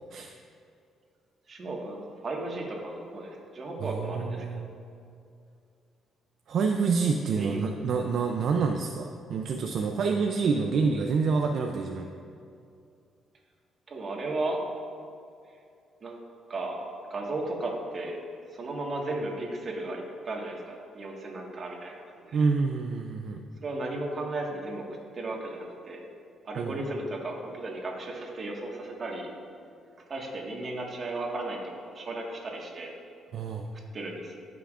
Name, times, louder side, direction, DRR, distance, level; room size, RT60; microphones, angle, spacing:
voice 1, 1.5-4.6 7.3-7.7 13.9-14.6 16.0-16.2 16.5-18.2 18.5-22.4 23.6-24.8 25.1-26.0 26.4-29.3 30.1-32.9 33.9-34.4, right 2 dB, 45° right, -1 dB, 1.6 m, -35 dB
voice 2, 3.8-4.7 6.5-12.1 22.3-23.4 26.6-26.8 33.3-33.7, right 5 dB, 65° right, 3 dB, 0.5 m, -27 dB
14.5 x 5.8 x 2.5 m, 2.5 s
cardioid pair, 90°, 0 cm